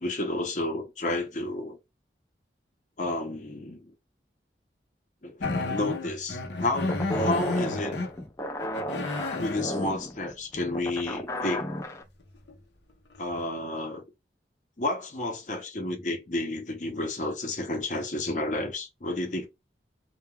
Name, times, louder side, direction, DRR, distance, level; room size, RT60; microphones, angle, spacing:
voice 1, 0.0-1.8 3.0-3.9 5.2-8.0 9.4-11.7 13.2-14.0 14.8-19.5, left 2 dB, 45° left, 0.7 m, -31 dB
sound 1, 5.4-8.1 8.6-9.6 12.5-12.6 13.1-13.4, left 3 dB, 85° left, 0.6 m, -31 dB
sound 2, 6.9-12.0, equal, 15° left, 0.4 m, -33 dB
2.3 x 2.3 x 2.9 m
head